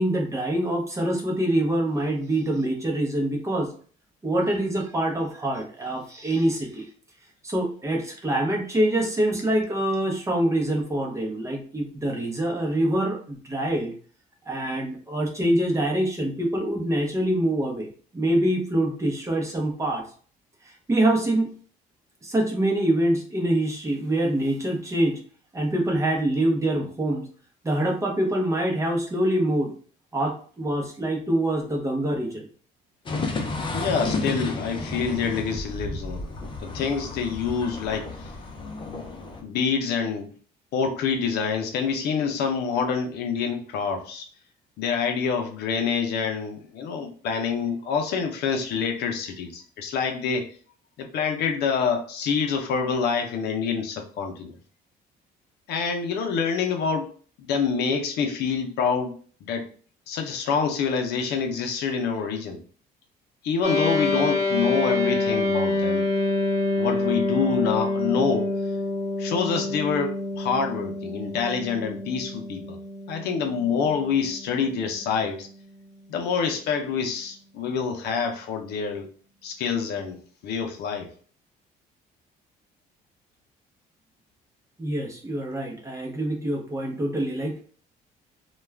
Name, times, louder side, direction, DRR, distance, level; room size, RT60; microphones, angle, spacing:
voice 1, 0.0-3.7 4.2-6.8 7.4-13.9 14.5-17.9 18.1-20.0 20.6-21.5 22.2-25.2 25.5-27.3 27.6-29.7 30.1-32.5 84.8-87.6, right 1 dB, 20° right, 0 dB, 0.8 m, -25 dB
sound 1, 33.1-39.4, left 3 dB, 30° left, 0.5 m, -32 dB
voice 2, 33.7-36.3 36.6-38.3 38.9-39.1 39.4-40.3 40.7-44.3 44.8-50.5 51.0-54.5 55.7-57.1 57.4-59.2 59.5-59.7 60.1-62.6 63.4-66.0 66.8-68.5 69.2-72.8 73.1-75.5 76.1-79.1 79.4-81.1, left 6 dB, 75° left, 4 dB, 0.6 m, -26 dB
sound 2, 63.6-75.2, left 2 dB, 40° right, 1.4 m, -27 dB
2.3 x 2.3 x 3.2 m, 0.43 s
cardioid pair, 110°, 17 cm